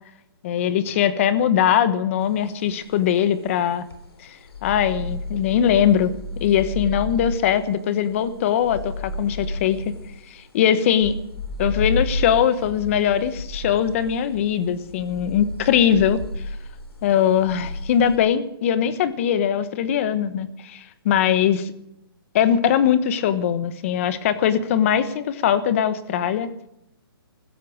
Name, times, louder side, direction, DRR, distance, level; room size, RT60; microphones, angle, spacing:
voice 1, 0.4-3.8 4.2-4.3 4.6-9.9 10.3-11.2 11.6-16.2 17.0-21.7 22.3-26.5, left 9 dB, 30° left, 14 dB, 1.2 m, -21 dB
sound 1, 2.3-18.2, left 1 dB, 80° left, 3.6 m, -32 dB
16.0 x 13.5 x 6.5 m, 0.81 s
hypercardioid pair, 160°, 13 cm